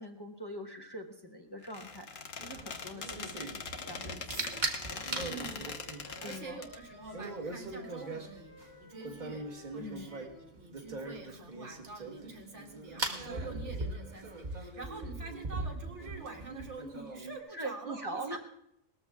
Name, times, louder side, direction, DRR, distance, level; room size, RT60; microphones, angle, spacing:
voice 1, 0.0-4.6 4.9-5.5 6.2-6.6 9.8-10.1 17.5-18.4, right 1 dB, 20° left, 2 dB, 1.2 m, -43 dB
Squeak, 1.6-6.8, left 5 dB, 90° left, 1.5 m, -42 dB
sound 1, 2.4-17.4, right 2 dB, 35° right, 1.6 m, -40 dB
Wind instrument woodwind instrument, 4.3-10.6, equal, 15° right, 3.1 m, -55 dB
voice 2, 5.3-5.7 6.2-18.4, right 3 dB, 65° right, 1 dB, 2.7 m, -47 dB
19.0 x 14.0 x 3.6 m, 0.75 s
omnidirectional pair, 1.3 m